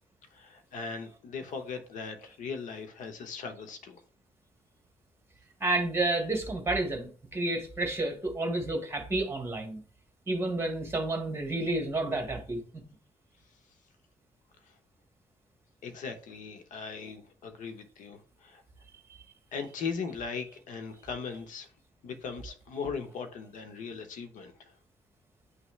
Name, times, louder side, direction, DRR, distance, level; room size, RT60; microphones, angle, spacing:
voice 1, 0.3-4.0 15.8-18.6 19.5-21.7 22.0-24.7, left 5 dB, 85° left, 0.9 m, -39 dB
voice 2, 5.6-9.8 10.3-12.6, right 2 dB, 20° right, 1.5 m, -30 dB
9.5 x 3.2 x 3.1 m
cardioid pair, 130°, 13 cm